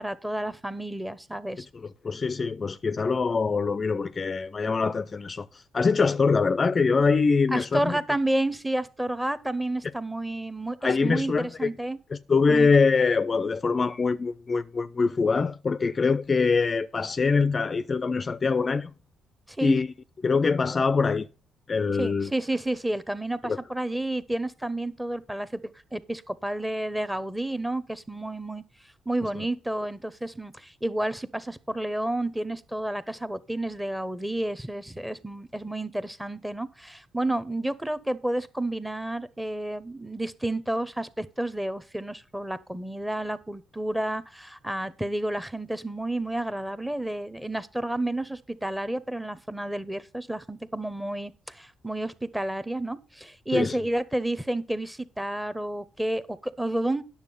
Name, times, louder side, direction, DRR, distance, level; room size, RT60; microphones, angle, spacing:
voice 1, 0.0-1.7 7.5-12.0 12.5-12.7 19.5-19.7 22.0-25.6 25.9-28.6 29.1-57.0, right 1 dB, 5° right, 0.8 m, -30 dB
voice 2, 1.7-8.0 10.8-11.7 12.1-18.9 19.6-19.9 20.2-21.3 21.7-22.3 23.4-23.6 53.5-53.7, left 4 dB, 35° left, 0.4 m, -24 dB
9.7 x 7.0 x 5.5 m
cardioid pair, 90°, 0 cm